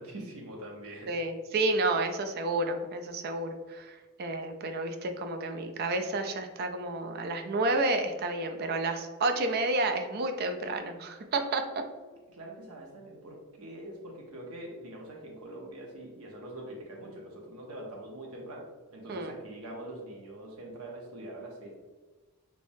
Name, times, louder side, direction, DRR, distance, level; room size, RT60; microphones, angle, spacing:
voice 1, 0.0-1.1 12.3-21.8, right 1 dB, 80° right, -1 dB, 0.8 m, -44 dB
voice 2, 1.1-11.6 19.1-19.3, right 2 dB, 45° right, 5 dB, 0.4 m, -30 dB
3.3 x 3.1 x 2.6 m, 1.3 s
head